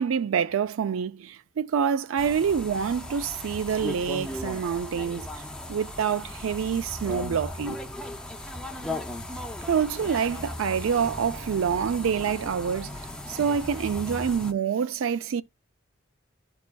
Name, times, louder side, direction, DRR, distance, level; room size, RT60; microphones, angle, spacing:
voice 1, 0.0-5.4 5.7-7.8 9.7-15.4, right 7 dB, 75° right, 0.4 m, -27 dB
sound 1, 2.2-14.5, left 1 dB, 5° left, 0.5 m, -37 dB
11.5 x 4.7 x 2.2 m
head